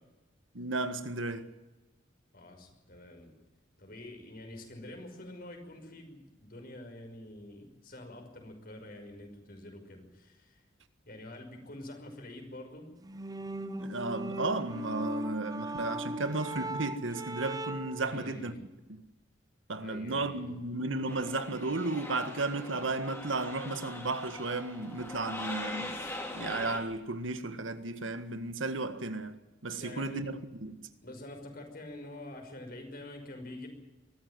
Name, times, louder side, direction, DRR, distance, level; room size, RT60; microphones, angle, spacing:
voice 1, 0.5-1.5 13.8-18.5 18.9-19.0 19.7-26.0 26.3-30.3 30.6-30.8, right 2 dB, 85° right, 1.7 m, -34 dB
voice 2, 2.3-3.3 3.8-10.6 11.1-12.9 18.0-18.6 19.8-20.6 29.7-30.3 31.0-33.7, left 1 dB, 50° left, 5.7 m, -46 dB
sound 1, 13.0-18.1, right 1 dB, 20° right, 0.8 m, -38 dB
sound 2, 21.0-26.8, left 1 dB, 15° left, 4.0 m, -42 dB
23.0 x 14.5 x 9.5 m
head